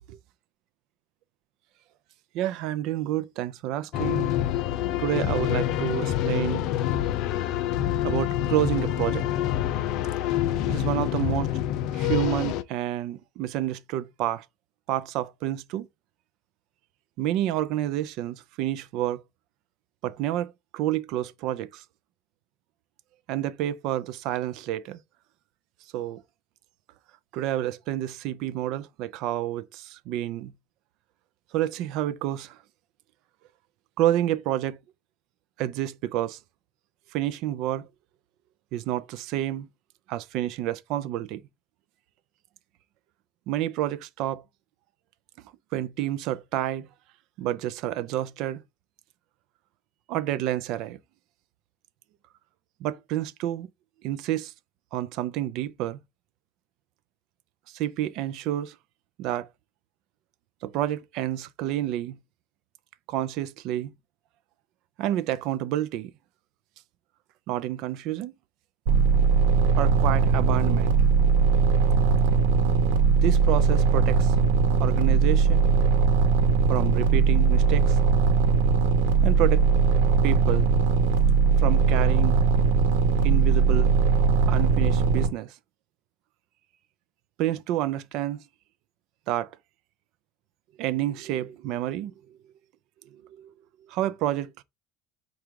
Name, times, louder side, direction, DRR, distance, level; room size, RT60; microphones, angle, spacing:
voice 1, 2.3-4.3 5.0-6.7 8.0-9.3 10.7-11.5 11.9-14.5 14.9-15.9 17.2-19.2 20.0-21.8 23.3-25.0 25.9-26.2 27.3-30.5 31.5-32.6 34.0-34.8 35.6-36.4 37.1-37.9 38.7-39.7 40.1-41.4 43.5-44.4 45.7-46.9 47.4-48.6 50.1-51.0 52.8-53.7 54.0-54.5 54.9-56.0 57.7-58.8 59.2-59.5 60.6-62.2 63.1-63.9 65.0-66.1 67.5-68.3 69.8-70.9 73.2-74.3 74.8-75.7 76.7-78.0 79.2-79.7 80.2-80.7 81.6-82.4 83.2-84.0 84.5-85.5 87.4-88.4 89.3-89.5 90.8-92.1 93.4-93.5 93.9-94.6, right 13 dB, 45° right, 0.4 m, -29 dB
sound 1, 3.9-12.6, left 11 dB, 45° left, 0.4 m, -26 dB
sound 2, 68.9-85.3, right 5 dB, 85° right, 1.0 m, -20 dB
4.9 x 2.3 x 4.5 m
cardioid pair, 170°, 0 cm